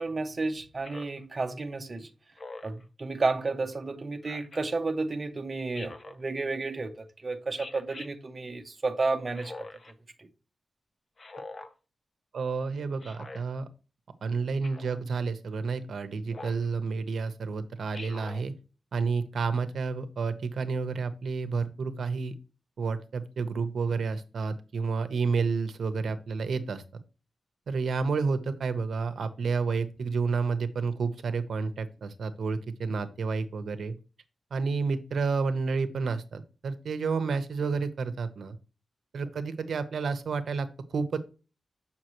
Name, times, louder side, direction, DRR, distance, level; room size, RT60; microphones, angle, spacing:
voice 1, 0.0-2.1 2.6-9.5, right 3 dB, 30° right, 0.8 m, -32 dB
Speech synthesizer, 0.8-1.2 2.4-2.8 4.2-4.6 5.7-6.2 7.6-8.1 9.3-9.9 11.2-11.7 13.0-13.4 14.6-15.0 16.3-16.7 17.9-18.4, left 3 dB, 40° left, 0.8 m, -44 dB
voice 2, 12.3-13.7 14.2-18.5 18.9-22.3 22.8-26.8 27.7-33.9 34.5-38.6 39.1-41.2, right 4 dB, 75° right, 0.8 m, -30 dB
7.7 x 5.8 x 3.0 m
wide cardioid pair, 150°, 0 cm